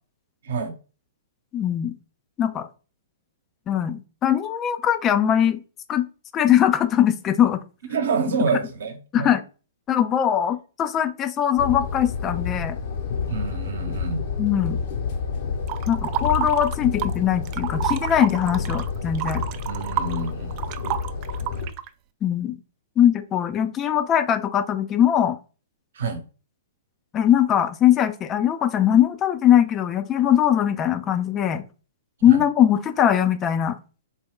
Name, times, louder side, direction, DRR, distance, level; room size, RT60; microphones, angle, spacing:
voice 1, 1.5-1.9 2.4-2.7 3.7-5.6 5.9-6.1 6.3-7.6 9.1-9.4 9.9-12.8 14.4-14.8 15.9-19.4 22.2-22.6 23.0-25.4 27.1-31.6 32.2-33.8, left 10 dB, 25° left, 0.4 m, -21 dB
voice 2, 7.9-9.3 13.3-14.2 19.7-20.6 25.9-26.2 32.2-32.4, right 4 dB, 70° right, 0.9 m, -27 dB
sound 1, 11.6-21.7, left 5 dB, 55° left, 1.0 m, -29 dB
sound 2, 15.7-17.2 17.5-21.9, right 14 dB, 40° right, 0.3 m, -30 dB
4.2 x 2.3 x 3.6 m
hypercardioid pair, 120°, 0 cm